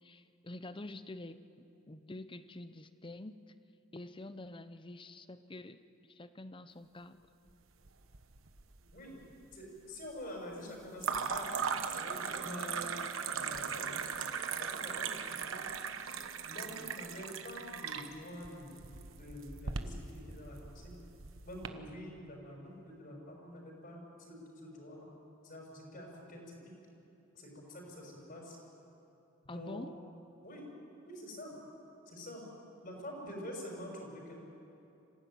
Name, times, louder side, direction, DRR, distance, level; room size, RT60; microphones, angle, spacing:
voice 1, 0.0-3.4 3.9-5.8 6.1-7.2 12.4-12.8 29.5-29.9, left 2 dB, 25° left, 12 dB, 0.8 m, -47 dB
sound 1, 7.9-8.6 8.9-9.5 11.0-21.7, right 6 dB, 75° right, 1.2 m, -38 dB
voice 2, 9.5-12.9 13.3-14.0 14.3-15.6 16.4-18.8 19.2-21.0 21.4-25.1 25.4-26.7 27.3-28.6 29.4-29.9 30.4-30.7 31.0-31.6 32.1-32.4 32.8-34.4, equal, 45° left, 0 dB, 6.3 m, -47 dB
26.0 x 15.5 x 9.3 m, 2.8 s
head